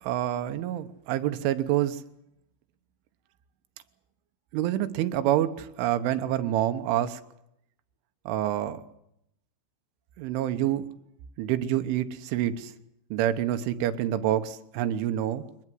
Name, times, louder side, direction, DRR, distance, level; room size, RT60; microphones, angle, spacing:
voice 1, 0.0-2.0 4.5-7.2 8.3-8.8 10.2-10.9 11.4-12.7 13.1-15.5, right 12 dB, 90° right, 9 dB, 3.6 m, -27 dB
23.5 x 21.0 x 7.7 m, 0.76 s
omnidirectional pair, 5.4 m